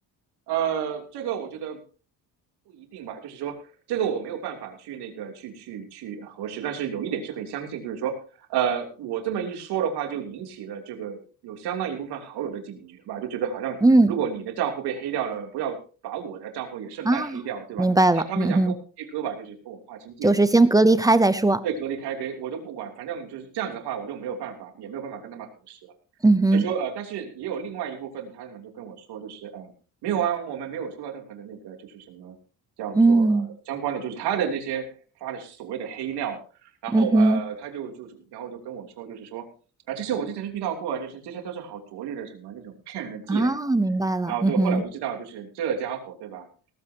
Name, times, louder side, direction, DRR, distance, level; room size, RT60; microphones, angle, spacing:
voice 1, 0.5-1.8 2.7-3.6 3.9-13.8 14.1-15.8 16.0-17.9 18.1-20.3 21.6-25.9 26.5-29.7 30.0-32.3 32.8-34.9 35.2-39.5 39.9-43.5 44.3-46.5, right 8 dB, 85° right, 3 dB, 3.2 m, -31 dB
voice 2, 13.8-14.1 17.0-17.4 17.8-18.7 20.2-21.6 26.2-26.6 32.9-33.5 36.9-37.4 43.3-44.8, right 2 dB, 10° right, 14 dB, 0.6 m, -19 dB
18.0 x 14.0 x 2.9 m, 0.37 s
cardioid pair, 170°, 39 cm